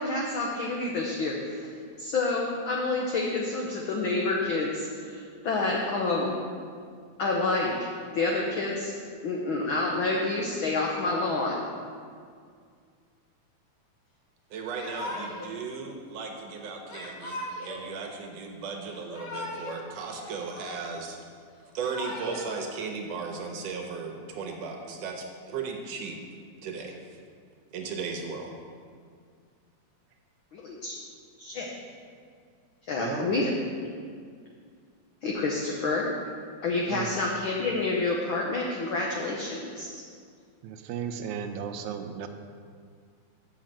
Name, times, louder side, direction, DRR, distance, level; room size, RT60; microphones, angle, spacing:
voice 1, 0.0-1.6 2.0-6.3 7.2-8.9 9.2-11.7 30.5-31.0 31.4-31.7 32.9-33.5 35.2-36.1 36.6-40.0, left 3 dB, 75° left, -2 dB, 1.1 m, -28 dB
voice 2, 14.5-21.2 21.7-26.2 26.6-27.0 27.7-28.6, right 5 dB, 70° right, 2 dB, 1.9 m, -36 dB
Yell / Crying sobbing, 14.7-15.5 16.9-17.9 18.9-19.8 20.1-21.1 21.6-22.6, left 1 dB, 50° left, 1.3 m, -38 dB
voice 3, 33.0-33.3 36.9-37.1 40.6-42.3, right 8 dB, 85° right, 7 dB, 2.0 m, -35 dB
6.5 x 6.4 x 7.5 m, 2.1 s
omnidirectional pair, 3.4 m